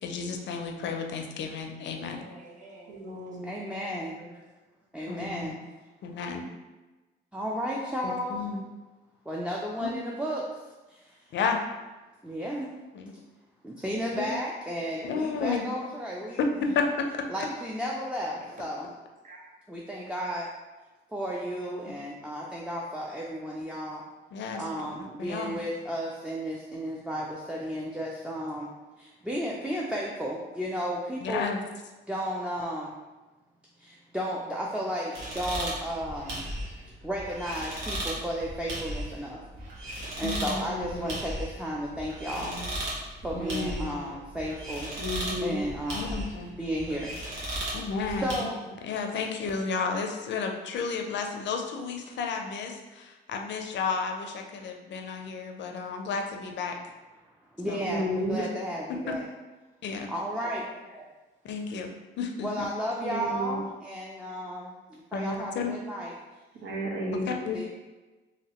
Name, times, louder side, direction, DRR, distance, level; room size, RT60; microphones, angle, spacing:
voice 1, 0.0-2.2 5.1-5.5 6.0-6.5 8.0-8.6 9.8-9.9 11.3-11.6 12.9-13.1 14.1-14.4 15.1-15.7 16.4-17.1 24.3-24.6 25.2-25.6 31.2-31.6 40.2-40.6 45.9-46.5 47.7-48.5 48.8-56.8 57.7-57.8 58.4-58.5 58.9-59.1 59.8-60.1 61.4-61.9 62.2-62.7 65.1-65.7 67.3-67.7, left 5 dB, 65° left, 3 dB, 0.5 m, -32 dB
voice 2, 1.9-3.0 14.8-15.3 15.6-16.0 18.4-18.7 19.2-19.6 60.3-61.1, right 1 dB, 40° right, -3 dB, 0.8 m, -50 dB
voice 3, 2.9-3.5 40.6-41.1 42.3-42.7 43.3-44.0 45.0-45.6 57.6-58.4 63.0-63.6 66.6-67.3, equal, 65° right, -2 dB, 0.9 m, -33 dB
voice 4, 3.4-4.4 4.9-5.6 7.3-8.4 9.3-10.6 10.9-11.3 12.2-12.7 13.6-16.4 17.3-18.8 19.7-20.5 21.1-24.0 24.6-28.7 29.0-31.5 32.1-32.9 33.8-36.4 37.0-39.4 39.9-42.6 43.2-44.9 45.4-46.2 46.6-47.7 48.2-48.6 57.6-59.3 60.1-60.6 62.4-66.1 67.5-67.7, equal, 5° right, -4 dB, 0.4 m, -33 dB
sound 1, 35.1-48.4, right 1 dB, 90° right, 1.0 m, -36 dB
3.0 x 2.9 x 2.9 m, 1.2 s
cardioid pair, 90°, 20 cm